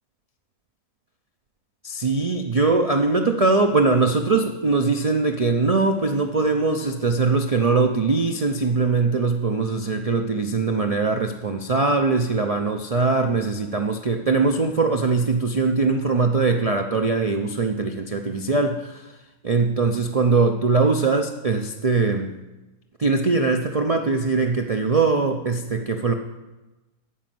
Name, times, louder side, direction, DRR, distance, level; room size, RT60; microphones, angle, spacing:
voice 1, 1.8-19.0 19.4-22.3 23.0-26.1, right 4 dB, 45° right, 4 dB, 0.4 m, -21 dB
13.0 x 5.1 x 7.6 m, 1.1 s
omnidirectional pair, 1.5 m